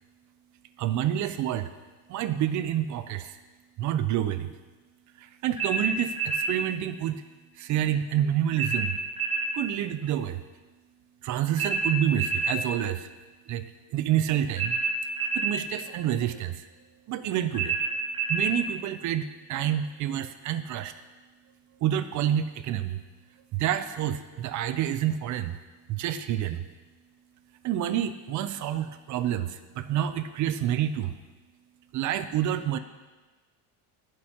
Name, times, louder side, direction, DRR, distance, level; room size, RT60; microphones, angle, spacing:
voice 1, 0.8-1.7 2.1-3.4 3.8-4.5 5.2-7.2 7.5-9.0 9.5-10.4 11.2-13.1 13.5-14.8 15.2-16.7 17.1-18.0 18.3-20.9 21.8-23.0 23.5-25.6 25.9-26.7 27.6-31.1 31.9-32.8, right 11 dB, 45° right, 11 dB, 0.5 m, -28 dB
sound 1, 5.6-6.5 8.6-9.5 11.6-12.6 14.6-15.6 17.5-18.5, right 4 dB, 15° right, 1.6 m, -28 dB
15.5 x 6.5 x 2.9 m, 1.3 s
cardioid pair, 135°, 41 cm